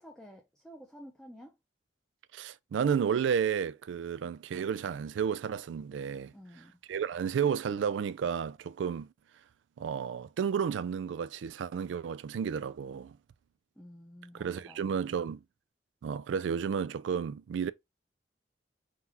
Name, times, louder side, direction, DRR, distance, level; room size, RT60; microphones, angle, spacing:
voice 1, 0.0-1.6 6.3-6.7 13.8-14.8, equal, 5° left, 0.5 m, -51 dB
voice 2, 2.3-6.3 6.9-9.1 9.8-13.2 14.3-15.4 16.0-17.7, right 7 dB, 90° right, 0.3 m, -32 dB
3.8 x 2.9 x 2.5 m
head